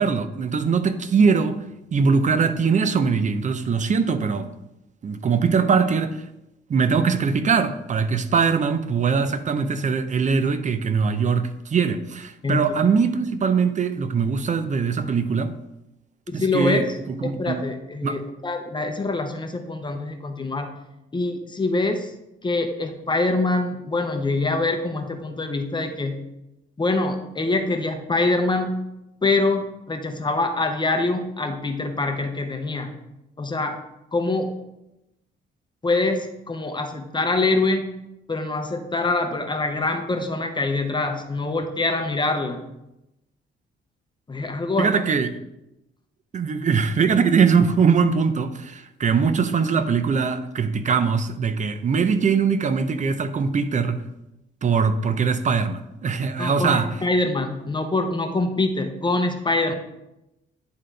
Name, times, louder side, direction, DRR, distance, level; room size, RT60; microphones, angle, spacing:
voice 1, 0.0-1.6 1.9-4.5 5.0-6.2 6.7-15.5 16.3-16.8 17.2-17.6 18.0-18.2 44.8-45.3 46.3-54.0 54.6-56.9, right 5 dB, 40° right, 0.6 m, -21 dB
voice 2, 12.4-12.7 16.3-16.9 17.2-20.8 21.1-22.1 22.4-26.3 26.8-28.8 29.2-33.0 33.4-33.8 34.1-34.6 35.8-37.9 38.3-42.6 44.3-44.9 56.4-59.7, left 2 dB, 25° left, 0.8 m, -24 dB
10.5 x 3.8 x 3.3 m
cardioid pair, 90°, 20 cm